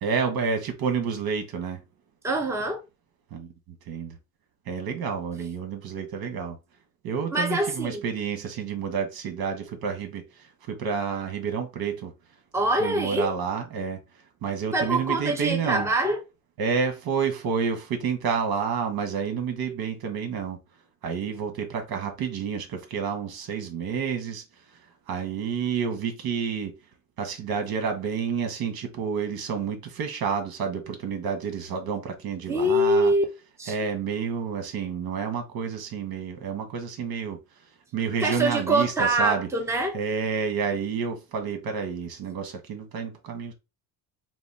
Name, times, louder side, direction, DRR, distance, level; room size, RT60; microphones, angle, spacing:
voice 1, 0.0-1.8 3.3-3.5 3.9-4.2 4.7-6.6 7.0-12.1 12.8-14.0 14.4-15.9 16.6-20.6 21.0-24.4 25.1-26.7 27.2-33.1 33.7-37.4 37.9-39.5 39.9-43.5, right 6 dB, 65° right, 1.5 m, -29 dB
voice 2, 2.2-2.8 7.3-8.0 12.5-13.3 14.7-16.2 32.5-33.2 33.6-33.7 38.2-40.0, right 1 dB, 5° right, 1.0 m, -24 dB
5.0 x 2.1 x 4.7 m
cardioid pair, 110°, 39 cm